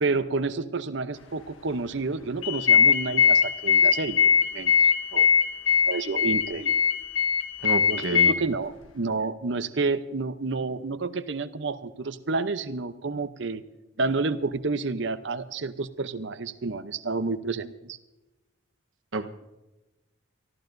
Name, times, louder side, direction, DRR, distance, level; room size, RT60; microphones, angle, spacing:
voice 1, 0.0-4.7 5.1-5.3 5.9-6.8 7.9-13.6 14.0-18.0, right 3 dB, 60° right, 12 dB, 0.7 m, -29 dB
sound 1, 2.4-8.3, left 7 dB, 80° left, 1.4 m, -21 dB
voice 2, 7.6-8.3 19.1-19.3, right 2 dB, 75° right, 8 dB, 1.1 m, -29 dB
23.5 x 14.5 x 2.6 m, 1.0 s
head